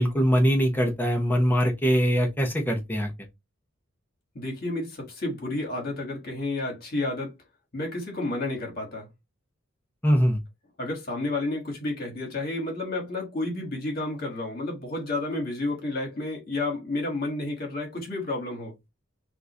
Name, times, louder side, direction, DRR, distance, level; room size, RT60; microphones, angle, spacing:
voice 1, 0.0-3.1 10.0-10.4, equal, 10° left, 0.8 m, -22 dB
voice 2, 4.3-7.3 7.7-9.1 10.8-18.7, left 2 dB, 50° left, 1.4 m, -31 dB
3.7 x 2.5 x 2.8 m
head